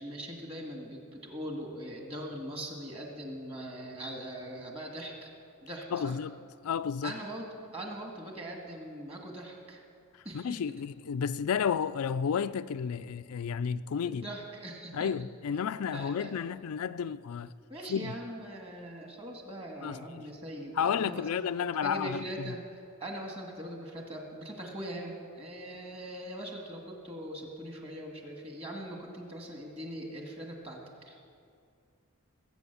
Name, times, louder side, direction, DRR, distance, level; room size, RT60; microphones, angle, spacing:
voice 1, 0.0-5.3 5.6-6.2 7.0-9.8 10.2-10.6 14.0-15.1 15.9-16.3 17.7-21.5 21.8-22.6 23.0-31.2, right 1 dB, 25° right, 2.1 m, -41 dB
voice 2, 5.9-6.4 6.6-7.1 10.3-14.2 14.9-17.5 17.9-18.1 19.8-20.0 20.8-22.5, left 7 dB, 75° left, 0.4 m, -32 dB
21.0 x 8.6 x 7.0 m
head